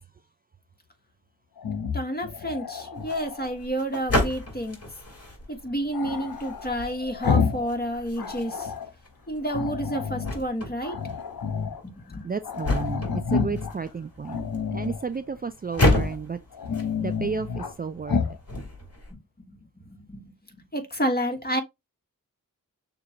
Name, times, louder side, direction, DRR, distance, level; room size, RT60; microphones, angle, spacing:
Growling, 1.6-3.6 5.9-7.7 8.0-8.9 9.5-10.4 10.8-11.8 12.1-12.2 12.4-13.8 14.2-15.0 15.7-16.2 16.5-17.7 18.1-18.4, left 5 dB, 80° left, 0.9 m, -29 dB
voice 1, 1.9-4.8 5.5-8.7 9.3-11.0 11.8-12.3 19.1-19.2 19.5-20.3 20.7-21.6, equal, 25° left, 1.5 m, -30 dB
sound 1, 3.0-19.1, left 1 dB, 45° left, 2.3 m, -32 dB
voice 2, 12.2-14.4 14.7-16.4 17.0-18.2, right 5 dB, 25° right, 0.4 m, -32 dB
6.5 x 2.4 x 2.9 m
cardioid pair, 45°, 35 cm